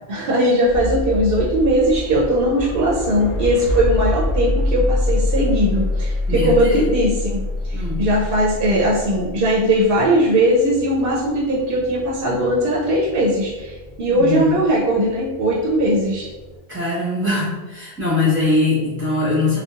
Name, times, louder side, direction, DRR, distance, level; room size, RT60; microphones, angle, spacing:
voice 1, 0.1-7.4 7.7-16.3, equal, 65° right, -5 dB, 0.7 m, -19 dB
sound 1, 0.7-16.6, left 1 dB, 75° left, 0.9 m, -26 dB
voice 2, 6.3-6.9 7.7-8.0 14.1-14.6 16.7-19.6, left 2 dB, 10° right, -9 dB, 1.1 m, -21 dB
2.8 x 2.2 x 2.3 m, 1.2 s
omnidirectional pair, 1.1 m